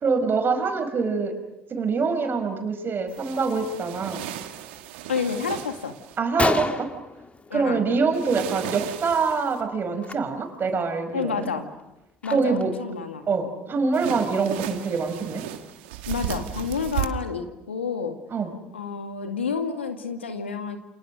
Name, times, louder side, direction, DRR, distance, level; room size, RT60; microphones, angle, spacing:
voice 1, 0.0-1.4 1.7-4.2 6.2-6.9 7.5-11.5 12.3-12.7 13.3-15.4 18.3-18.5, right 4 dB, 35° right, 7 dB, 5.4 m, -25 dB
sound 1, 3.1-6.2 8.1-9.6 13.9-17.1, right 13 dB, 70° right, 2.1 m, -35 dB
voice 2, 5.1-5.9 7.5-7.8 11.1-11.7 12.2-13.3 16.1-18.2 18.7-20.8, left 6 dB, 85° left, 7 dB, 2.1 m, -29 dB
Gunshot gunfire, 6.1-6.2 6.4-8.0 8.3-8.7 8.9-9.2 10.0-10.1 10.7-10.8 11.2-12.8, left 3 dB, 20° left, 1.9 m, -30 dB
30.0 x 27.0 x 6.4 m, 0.96 s
figure-of-eight pair, 60°, 6 cm